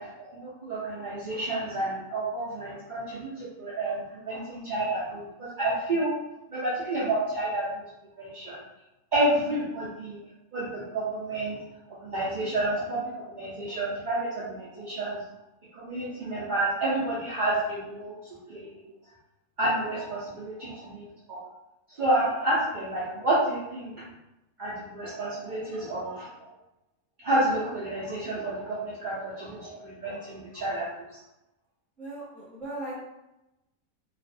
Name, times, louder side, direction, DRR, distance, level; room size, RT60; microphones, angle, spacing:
voice 1, 0.0-6.1 6.5-7.8 8.2-8.6 9.1-10.2 10.5-11.6 11.9-15.2 15.7-18.1 18.5-18.8 19.6-21.4 21.9-23.9 24.6-26.3 27.2-31.1, right 1 dB, 65° right, -9 dB, 0.4 m, -30 dB
voice 2, 32.0-33.0, right 1 dB, ahead, -10 dB, 0.8 m, -38 dB
2.4 x 2.0 x 2.5 m, 0.92 s
omnidirectional pair, 1.5 m